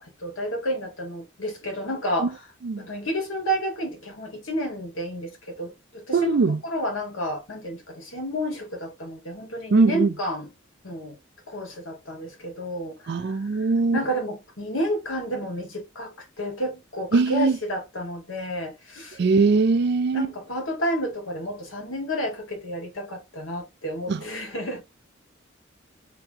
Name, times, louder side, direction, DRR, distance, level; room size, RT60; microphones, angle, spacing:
voice 1, 0.0-2.5 2.8-6.3 6.6-10.5 10.8-11.2 11.5-19.2 20.1-24.8, equal, 75° left, 1.7 m, -31 dB
voice 2, 6.1-6.6 9.7-10.1 13.1-14.0 17.1-17.6 19.2-20.3 24.1-24.2, right 4 dB, 55° right, 0.4 m, -20 dB
3.4 x 2.9 x 2.7 m
head